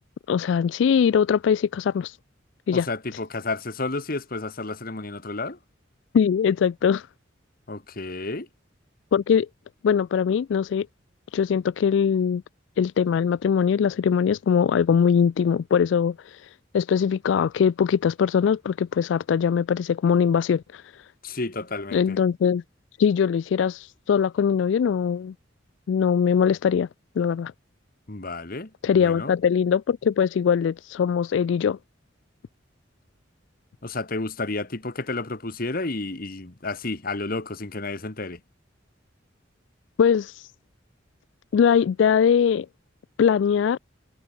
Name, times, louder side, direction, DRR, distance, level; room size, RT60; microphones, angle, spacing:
voice 1, 0.3-2.2 2.7-2.9 6.1-7.1 9.1-9.5 9.8-10.9 11.3-12.4 12.8-21.1 21.9-22.6 23.0-25.3 25.9-26.9 27.2-27.5 28.8-31.8 40.0-40.5 41.5-42.7 43.2-43.8, left 7 dB, 70° left, 0.3 m, -21 dB
voice 2, 2.7-5.6 7.7-8.5 21.2-22.2 28.1-29.3 33.8-38.4, left 3 dB, 50° left, 1.7 m, -31 dB
head